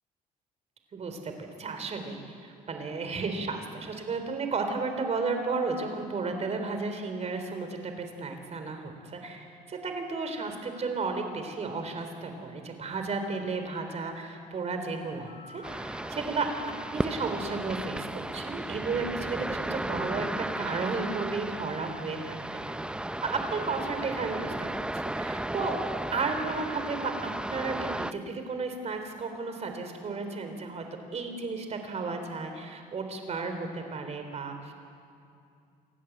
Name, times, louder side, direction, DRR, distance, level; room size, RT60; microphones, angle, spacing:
voice 1, 0.9-16.5 16.9-22.6 23.2-24.7 24.9-25.8 26.1-30.8 31.1-34.7, right 4 dB, 40° right, 6 dB, 3.7 m, -33 dB
sound 1, 10.1-11.9 12.9-17.2, equal, 90° left, 7.8 m, -56 dB
sound 2, 15.6-28.1, right 1 dB, 5° right, 0.6 m, -35 dB
28.5 x 13.5 x 9.3 m, 2.5 s
cardioid pair, 110°, 17 cm